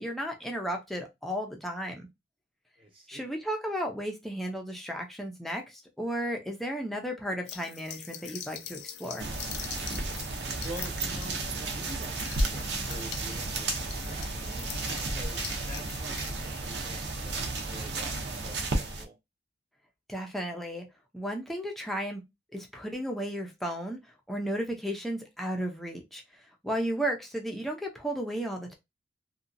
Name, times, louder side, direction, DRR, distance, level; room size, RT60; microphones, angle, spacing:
voice 1, 0.0-2.1 3.1-9.3 20.1-20.9 21.1-22.2 22.5-24.0 24.3-26.2 26.6-28.7, equal, ahead, 0.6 m, -34 dB
voice 2, 2.8-3.3 10.6-19.1, right 1 dB, 30° right, 1.0 m, -46 dB
sound 1, 7.5-16.3, left 9 dB, 70° left, 0.4 m, -43 dB
sound 2, 9.2-19.0, right 2 dB, 70° right, 0.7 m, -33 dB
2.8 x 2.4 x 2.6 m
head